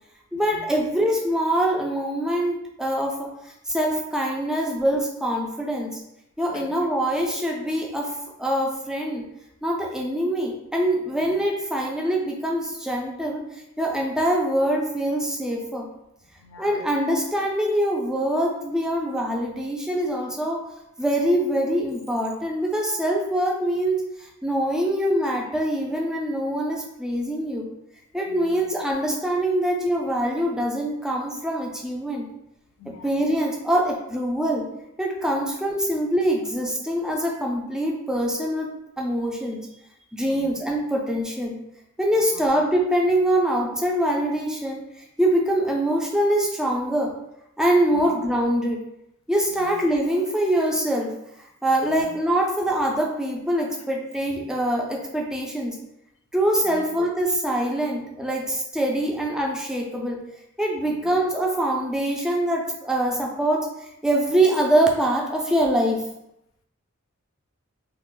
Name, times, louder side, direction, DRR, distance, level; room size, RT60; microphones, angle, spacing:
voice 1, 0.3-6.0 6.4-9.2 9.6-15.9 16.6-20.7 21.0-27.7 28.1-32.3 33.0-34.7 35.0-38.7 39.0-39.7 40.1-41.6 42.0-47.1 47.6-48.9 49.3-51.2 51.6-55.8 56.3-60.2 60.6-63.7 64.0-66.1, right 1 dB, 5° right, 0 dB, 0.3 m, -24 dB
voice 2, 16.4-16.8 28.3-28.7 32.8-33.1 40.2-40.5 42.2-42.5 47.9-48.1 49.5-49.7 51.8-52.0 56.6-56.9 60.8-61.0, left 3 dB, 70° left, 5 dB, 0.4 m, -44 dB
2.3 x 2.1 x 3.7 m, 0.83 s
head